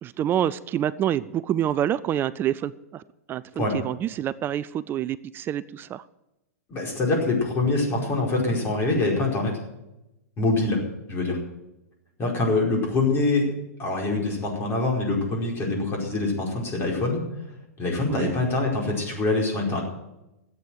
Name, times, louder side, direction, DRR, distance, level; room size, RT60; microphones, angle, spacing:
voice 1, 0.0-3.0 3.3-6.0 18.1-18.3, right 11 dB, 25° right, 17 dB, 0.4 m, -27 dB
voice 2, 6.7-9.5 10.4-10.8 11.1-11.4 12.2-13.5 13.8-17.2 17.8-19.8, left 2 dB, 25° left, 0 dB, 5.0 m, -24 dB
14.0 x 8.5 x 7.8 m, 0.92 s
hypercardioid pair, 115°, 8 cm